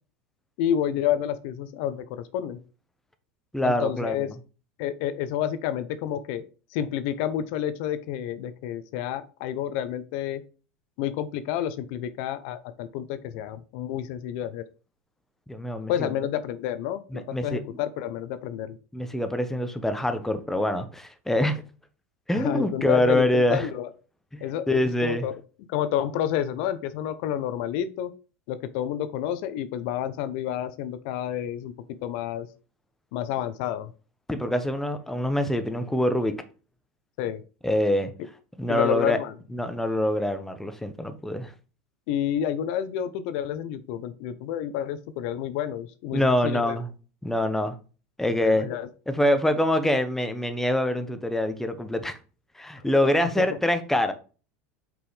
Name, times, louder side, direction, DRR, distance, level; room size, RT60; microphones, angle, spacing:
voice 1, 0.6-2.6 3.6-4.3 4.8-6.4 6.7-10.4 11.0-14.6 15.9-18.8 22.4-23.9 24.4-25.3 25.7-28.1 28.5-31.7 32.0-32.5 33.1-33.9 37.2-37.4 38.7-39.3 42.1-46.8 48.4-48.9, left 10 dB, 65° left, 0.6 m, -29 dB
voice 2, 3.5-4.2 15.5-16.1 17.1-17.6 18.9-21.6 22.3-23.7 24.3-25.3 34.3-36.3 37.6-38.1 38.6-39.2 39.5-41.5 46.1-46.9 47.2-47.7 48.2-48.7 49.1-52.2 52.6-54.1, left 1 dB, 5° left, 0.9 m, -25 dB
5.8 x 5.3 x 3.3 m
hypercardioid pair, 105°, 7 cm